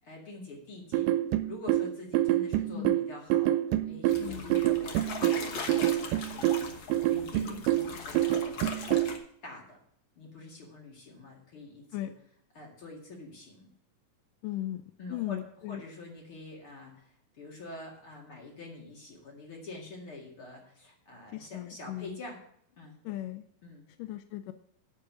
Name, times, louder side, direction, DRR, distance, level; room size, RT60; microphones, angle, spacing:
voice 1, 0.0-1.1 1.5-9.2 9.4-9.8 10.2-12.1 12.5-13.7 15.0-15.4 15.7-22.4 22.8-23.0 23.6-23.9, left 2 dB, 45° left, -1 dB, 2.7 m, -46 dB
sound 1, 0.9-9.2, right 14 dB, 85° right, 2.2 m, -27 dB
sound 2, 4.1-9.2, left 5 dB, 60° left, 1.3 m, -40 dB
voice 2, 4.2-4.6 7.4-7.6 11.9-12.1 14.4-15.8 21.3-22.1 23.1-23.4 24.0-24.5, left 14 dB, 80° left, 9 dB, 2.1 m, -37 dB
9.3 x 7.5 x 6.0 m, 0.67 s
omnidirectional pair, 3.9 m